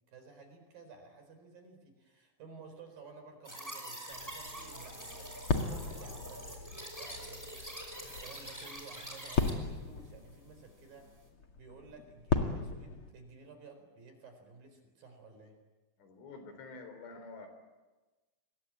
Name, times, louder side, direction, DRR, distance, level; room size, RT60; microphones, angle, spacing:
voice 1, 0.1-7.8 8.2-11.1 11.5-15.6, right 4 dB, 50° right, 6 dB, 5.9 m, -54 dB
sound 1, 3.4-9.5, right 1 dB, 5° right, 5.1 m, -45 dB
sound 2, 4.1-13.1, left 4 dB, 50° left, 1.5 m, -37 dB
voice 2, 16.0-17.5, left 3 dB, 85° left, 8 dB, 6.6 m, -48 dB
27.5 x 23.0 x 8.8 m, 1.2 s
omnidirectional pair, 5.4 m